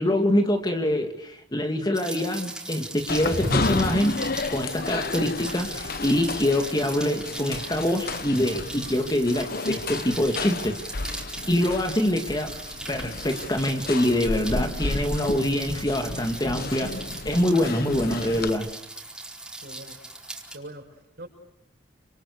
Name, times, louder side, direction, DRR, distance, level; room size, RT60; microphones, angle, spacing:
voice 1, 0.0-4.2 4.5-10.8 11.5-12.6 12.9-16.9 17.2-18.7, left 1 dB, 20° left, 5 dB, 2.2 m, -25 dB
Rain, 1.9-20.6, right 2 dB, 5° right, 4.6 m, -39 dB
sound 1, 2.9-4.3, equal, 80° left, 6.3 m, -30 dB
sound 2, 3.1-18.5, left 3 dB, 50° left, 1.1 m, -33 dB
voice 2, 19.6-20.0 20.5-21.3, right 1 dB, 55° right, 2 dB, 6.9 m, -42 dB
29.0 x 27.0 x 6.6 m, 0.82 s
head